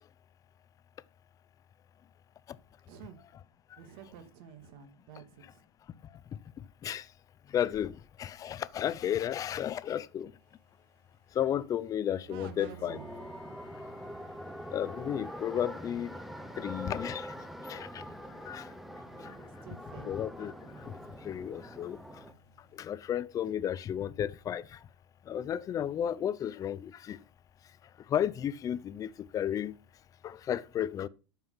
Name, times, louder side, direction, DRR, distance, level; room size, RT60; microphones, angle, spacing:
voice 1, 2.9-3.4 3.8-5.6 12.3-13.1 19.0-20.1, right 8 dB, 55° right, 2.3 m, -50 dB
voice 2, 7.5-10.3 11.3-13.0 14.7-16.1 16.6-17.3 17.7-18.0 18.3-18.7 19.2-19.3 20.1-20.5 20.8-21.0 21.2-22.0 22.7-24.8 25.3-27.2 28.1-29.7 30.2-31.1, left 10 dB, 25° left, 0.6 m, -33 dB
sound 1, 10.4-22.8, right 7 dB, 85° right, 4.9 m, -61 dB
Bowed string instrument, 12.5-16.9, left 5 dB, 90° left, 2.1 m, -62 dB
sound 2, 12.9-22.3, equal, ahead, 0.9 m, -44 dB
13.0 x 5.6 x 5.7 m
supercardioid pair, 135°, 14 cm